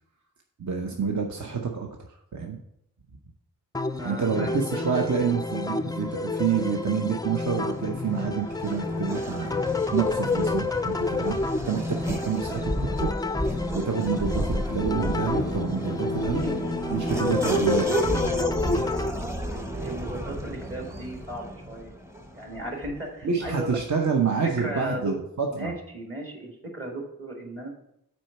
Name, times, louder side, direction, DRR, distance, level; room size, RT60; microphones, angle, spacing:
voice 1, 0.6-2.6 4.0-11.4 11.7-13.1 13.7-16.4 16.9-18.8 23.2-25.7, right 6 dB, 55° right, 2 dB, 0.8 m, -28 dB
sound 1, 3.7-19.1, left 3 dB, 10° left, 0.3 m, -29 dB
voice 2, 3.9-4.8 16.3-16.5 19.7-21.9 22.3-23.8 24.6-25.1 25.5-27.7, right 1 dB, 40° right, 0 dB, 1.8 m, -36 dB
Race car auto racing / Accelerating revving vroom, 7.6-23.2, right 1 dB, 10° right, 0.8 m, -33 dB
Guitar, 14.7-21.2, equal, 85° right, 2.3 m, -36 dB
6.1 x 4.4 x 5.7 m, 0.77 s
wide cardioid pair, 60°, 34 cm